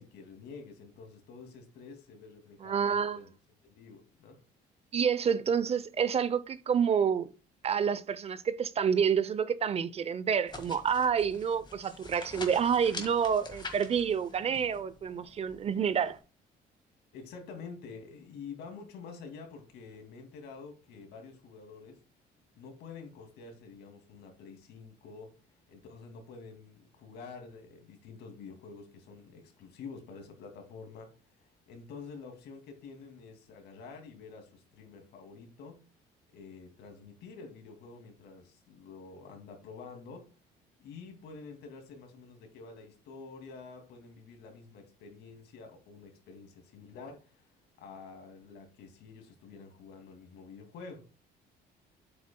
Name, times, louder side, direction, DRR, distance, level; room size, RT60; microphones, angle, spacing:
voice 1, 0.0-3.3 3.6-4.4 17.1-22.0 22.6-25.4 25.7-35.8 36.3-40.3 40.8-47.5 47.8-51.1, left 4 dB, 80° left, 2.3 m, -48 dB
voice 2, 2.6-3.2 4.9-7.3 7.6-16.2, right 7 dB, 35° right, 0.6 m, -28 dB
sound 1, 10.5-16.2, left 3 dB, 25° left, 1.8 m, -46 dB
8.5 x 7.8 x 2.2 m
cardioid pair, 110°, 17 cm